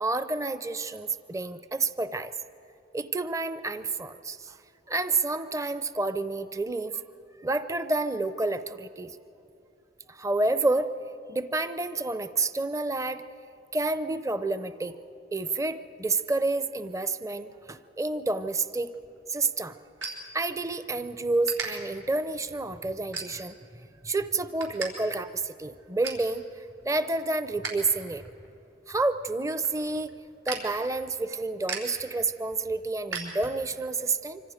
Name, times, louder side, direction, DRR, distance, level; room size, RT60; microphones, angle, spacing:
voice 1, 0.0-2.3 2.9-4.6 4.9-7.0 7.4-9.2 10.1-10.9 11.3-13.2 13.7-15.0 15.3-18.9 19.3-19.8 20.3-28.2 28.9-30.1 30.5-34.4, right 3 dB, 15° right, 12 dB, 0.6 m, -29 dB
sound 1, 18.9-20.9 21.4-21.7 22.2-22.5 23.1-23.7 24.1-24.9 25.2-25.3 25.6-26.3 26.7-27.8 28.1-33.9, right 4 dB, 85° right, 4.3 m, -39 dB
25.5 x 25.5 x 5.1 m, 2.9 s
head